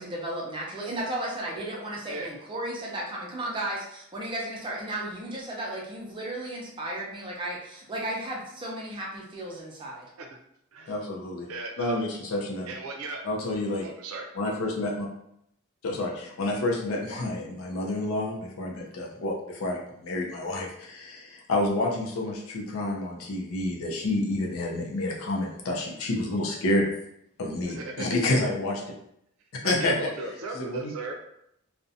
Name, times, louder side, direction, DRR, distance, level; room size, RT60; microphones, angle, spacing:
voice 1, 0.0-10.1, right 1 dB, 25° right, -3 dB, 0.5 m, -34 dB
voice 2, 10.9-11.5 11.8-12.7 13.2-13.9 14.3-15.1 15.8-26.9 27.4-28.8 29.6-30.1 30.5-30.9, left 2 dB, 75° left, -1 dB, 0.4 m, -29 dB
voice 3, 11.5-11.9 12.7-13.2 13.8-14.3 27.7-28.1 29.6-31.1, right 3 dB, 85° right, 2 dB, 0.5 m, -36 dB
2.4 x 2.1 x 2.6 m, 0.75 s
head